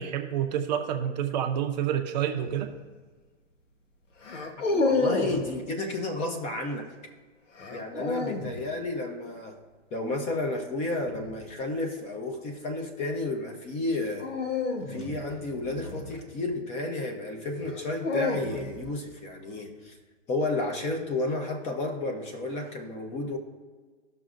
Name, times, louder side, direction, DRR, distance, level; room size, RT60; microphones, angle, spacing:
voice 1, 0.0-2.7, right 9 dB, 35° right, 5 dB, 0.6 m, -28 dB
sound 1, 2.4-2.7 4.2-5.5 7.6-8.6 11.0-11.4 14.2-16.6 17.6-18.9, left 3 dB, 85° left, 1.2 m, -30 dB
voice 2, 4.7-6.9 7.7-9.6 9.9-14.3 14.9-20.0 20.3-23.4, left 2 dB, 20° left, 3 dB, 0.7 m, -32 dB
15.5 x 6.2 x 2.6 m, 1.4 s
hypercardioid pair, 135°, 36 cm